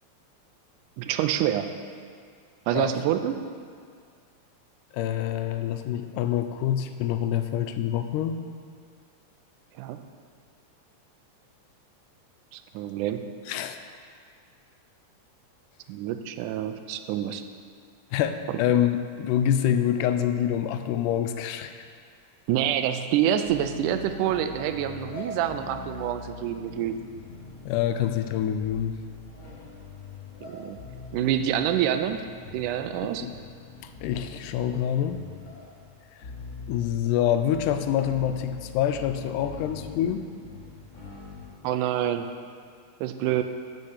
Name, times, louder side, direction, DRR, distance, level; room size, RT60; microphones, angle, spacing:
voice 1, 1.0-1.7 2.7-3.4 9.8-10.0 12.5-13.3 15.9-17.4 22.5-27.0 30.4-30.8 31.1-32.2 32.5-33.3 41.6-42.3 43.0-43.4, right 11 dB, 85° right, 8 dB, 2.0 m, -27 dB
voice 2, 4.9-8.4 13.5-13.8 18.1-21.7 27.7-29.0 33.2-33.3 34.0-35.2 36.7-40.2, left 10 dB, 85° left, 9 dB, 2.0 m, -26 dB
sound 1, 23.4-41.4, left 3 dB, 35° left, 2.4 m, -43 dB
8.6 x 5.2 x 6.4 m, 2.1 s
omnidirectional pair, 3.5 m